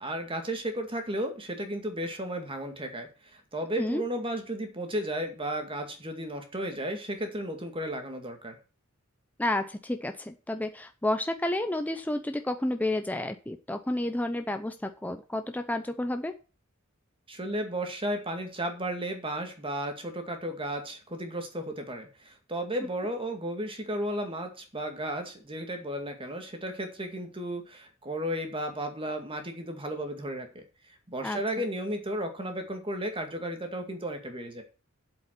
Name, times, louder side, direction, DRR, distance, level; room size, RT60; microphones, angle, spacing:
voice 1, 0.0-8.6 17.3-30.6 31.1-34.6, right 1 dB, 25° right, 5 dB, 2.2 m, -34 dB
voice 2, 9.4-16.3 31.2-31.4, left 1 dB, 10° left, 7 dB, 0.6 m, -30 dB
8.0 x 7.8 x 6.0 m, 0.35 s
head